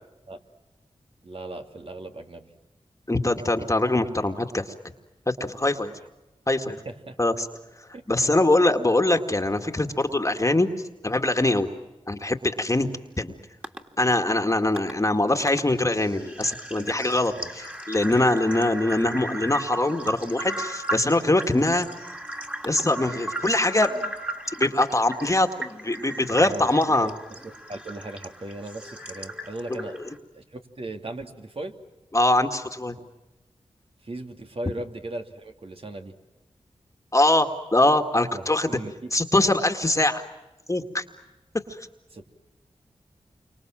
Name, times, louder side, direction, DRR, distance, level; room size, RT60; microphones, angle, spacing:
voice 1, 1.2-2.5 6.7-7.2 16.7-16.9 17.3-17.5 26.3-30.0 30.3-31.7 34.0-36.1 38.3-39.1 42.1-42.2, right 2 dB, 55° right, 4 dB, 2.9 m, -38 dB
voice 2, 3.1-4.7 5.3-5.9 6.5-6.8 7.2-7.3 8.1-10.7 11.0-11.7 12.1-12.9 13.2-13.3 14.0-21.9 22.6-24.1 24.6-27.1 29.7-29.8 32.1-33.0 37.1-38.7 39.1-40.2 40.7-41.0, left 2 dB, 25° left, 6 dB, 2.0 m, -23 dB
sound 1, 13.6-13.8 14.8-14.9 15.5-15.6 16.0-30.2, right 1 dB, 10° right, 2.9 m, -36 dB
29.5 x 25.0 x 7.6 m, 1.0 s
cardioid pair, 55°, 12 cm